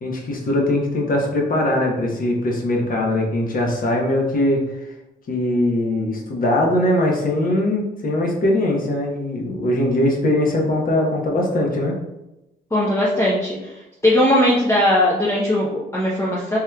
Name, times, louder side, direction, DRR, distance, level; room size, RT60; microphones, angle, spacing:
voice 1, 0.0-4.9 5.3-11.9, left 1 dB, 45° left, 0 dB, 0.9 m, -21 dB
voice 2, 12.7-13.8 14.0-16.6, left 1 dB, 15° left, -5 dB, 0.6 m, -19 dB
3.6 x 2.9 x 2.2 m, 0.93 s
cardioid pair, 90°, 20 cm